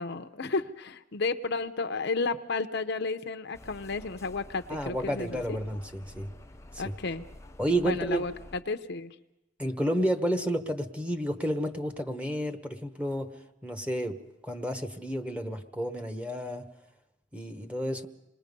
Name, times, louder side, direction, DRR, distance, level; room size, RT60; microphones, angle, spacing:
voice 1, 0.0-5.6 6.8-7.3 7.7-9.2, left 3 dB, 60° left, 8 dB, 0.8 m, -32 dB
sound 1, 3.5-8.6, left 1 dB, 15° left, 0.6 m, -49 dB
voice 2, 4.7-6.3 6.7-6.9 7.6-8.3 9.6-13.3 13.6-16.7 17.3-18.1, right 1 dB, 5° right, 7 dB, 1.1 m, -31 dB
27.0 x 20.5 x 5.4 m, 0.93 s
head